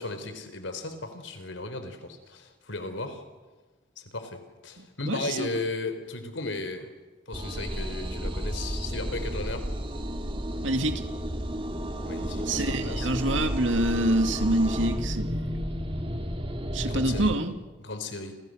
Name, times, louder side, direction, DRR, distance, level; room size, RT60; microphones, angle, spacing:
voice 1, 0.0-3.2 4.0-6.9 7.3-9.7 12.0-13.1 16.9-17.3 17.8-18.3, left 2 dB, 80° left, 9 dB, 4.0 m, -35 dB
voice 2, 4.8-5.6 10.6-11.1 12.4-15.5 16.7-17.5, right 1 dB, 90° right, 7 dB, 2.4 m, -27 dB
sound 1, 7.3-17.4, equal, 30° right, 2.3 m, -32 dB
30.0 x 28.0 x 6.5 m, 1.2 s
head